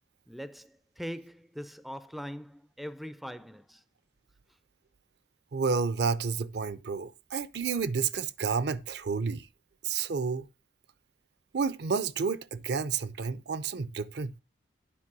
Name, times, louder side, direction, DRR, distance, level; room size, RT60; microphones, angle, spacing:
voice 1, 0.3-3.8, equal, ahead, 0.4 m, -41 dB
voice 2, 5.5-9.5 9.8-10.5 11.5-14.4, right 5 dB, 60° right, 0.5 m, -30 dB
8.6 x 5.2 x 6.1 m
head